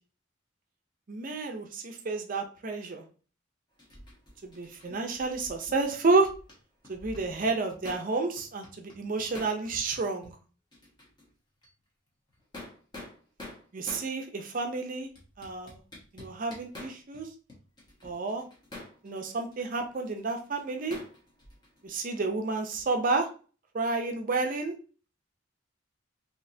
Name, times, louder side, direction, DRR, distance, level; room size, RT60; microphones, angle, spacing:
voice 1, 1.1-3.0 4.4-6.3 6.9-10.3 13.7-15.1 15.4-15.8 16.1-17.3 18.0-18.4 19.0-21.0 21.8-23.3 23.7-24.7, right 3 dB, 45° right, 4 dB, 0.5 m, -30 dB
sound 1, 3.8-6.6 6.8-8.1 8.4-10.0 10.2-10.3 10.7-11.3 11.6-11.7 12.3-14.1 14.6-14.7 15.2-17.2 17.5-21.9, left 1 dB, 20° left, 1.1 m, -47 dB
4.1 x 2.9 x 2.7 m, 0.37 s
head